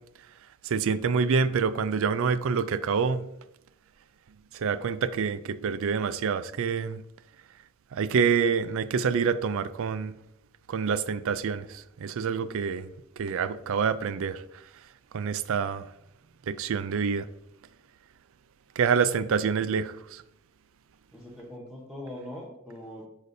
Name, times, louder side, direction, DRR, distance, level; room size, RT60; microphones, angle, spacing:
voice 1, 0.6-3.2 4.5-7.0 7.9-10.1 10.7-12.9 13.2-14.4 15.1-15.9 16.5-17.2 18.8-20.2, right 6 dB, 65° right, 0.4 m, -27 dB
voice 2, 21.1-23.1, left 1 dB, 5° right, 0.9 m, -41 dB
8.1 x 5.0 x 2.7 m
head